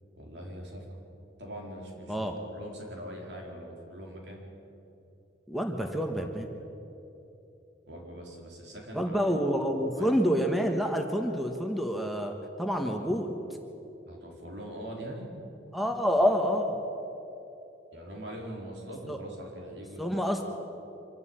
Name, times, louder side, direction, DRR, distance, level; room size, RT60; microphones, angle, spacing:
voice 1, 0.1-0.9 1.4-4.5 7.9-9.3 9.9-10.1 14.1-15.3 17.9-20.5, equal, 75° right, -1 dB, 4.4 m, -42 dB
voice 2, 5.5-6.5 8.9-13.3 15.7-16.7 19.1-19.2 20.0-20.5, equal, ahead, 3 dB, 1.3 m, -28 dB
25.5 x 12.0 x 8.8 m, 2.9 s
head